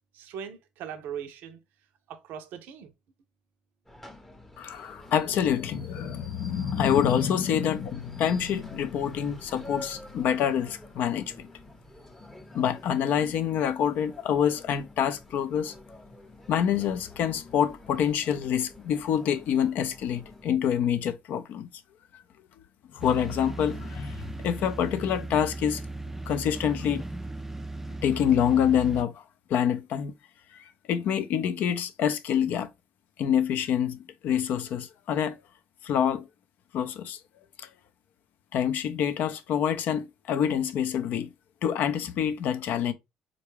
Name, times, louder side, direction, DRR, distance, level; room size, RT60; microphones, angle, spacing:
voice 1, 0.1-1.6 2.1-2.9, right 8 dB, 70° right, 0.5 m, -39 dB
sound 1, 3.9-20.5, left 1 dB, 10° left, 0.7 m, -48 dB
voice 2, 4.6-11.5 12.5-15.7 16.5-21.7 22.1-22.2 22.9-25.8 26.3-27.0 28.0-29.2 29.5-30.1 30.5-32.7 33.2-35.4 35.8-36.3 36.7-37.2 37.6-37.7 38.5-41.3 41.6-42.9, left 9 dB, 65° left, 0.4 m, -26 dB
sound 2, 23.0-29.1, right 2 dB, 10° right, 0.3 m, -37 dB
3.7 x 2.2 x 3.1 m
supercardioid pair, 65°, 3 cm